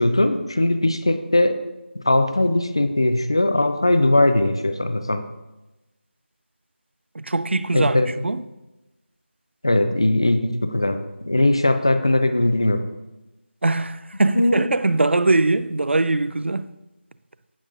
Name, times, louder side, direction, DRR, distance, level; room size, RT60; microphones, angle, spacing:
voice 1, 0.0-1.6 2.0-5.2 7.7-8.1 9.6-12.8 14.4-14.7, left 1 dB, 25° left, 0.4 m, -20 dB
voice 2, 7.1-8.0 8.2-8.4 13.6-16.7, right 2 dB, 80° right, 0.5 m, -21 dB
16.0 x 6.0 x 2.5 m
figure-of-eight pair, 180°, 6 cm